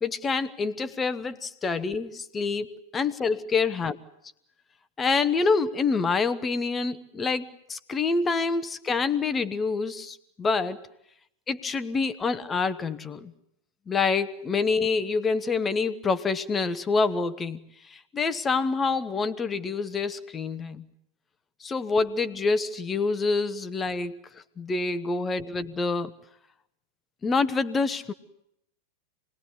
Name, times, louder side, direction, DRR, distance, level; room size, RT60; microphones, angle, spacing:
voice 1, 0.0-3.9 5.0-10.9 11.5-13.3 13.9-20.9 21.6-26.2 27.2-28.1, left 4 dB, 20° left, 13 dB, 1.3 m, -27 dB
26.0 x 20.5 x 9.6 m, 0.75 s
figure-of-eight pair, 90°, 0 cm